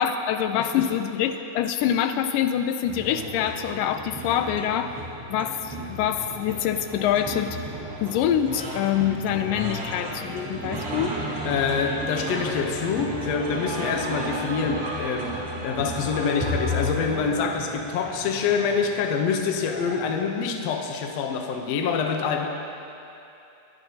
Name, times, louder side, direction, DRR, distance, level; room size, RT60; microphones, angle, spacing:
voice 1, 0.0-4.9 5.3-7.6 8.0-11.2, left 9 dB, 85° left, 8 dB, 2.2 m, -25 dB
voice 2, 0.5-0.9 11.4-22.5, left 6 dB, 70° left, 3 dB, 1.7 m, -26 dB
sound 1, 2.9-20.3, equal, 40° right, 1.0 m, -33 dB
22.0 x 10.5 x 2.8 m, 2.8 s
omnidirectional pair, 3.8 m